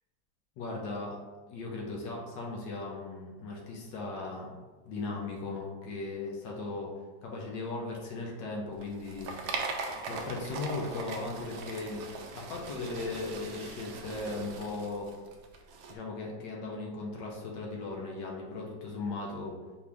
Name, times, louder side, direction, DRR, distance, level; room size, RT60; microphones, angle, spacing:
voice 1, 0.6-1.2 1.5-6.9 7.2-9.7 10.1-12.1 12.3-15.1 15.9-19.5, left 3 dB, 75° left, -1 dB, 1.4 m, -37 dB
sound 1, 8.8-15.9, right 4 dB, 70° right, 0.9 m, -40 dB
4.7 x 2.7 x 3.4 m, 1.3 s
omnidirectional pair, 2.1 m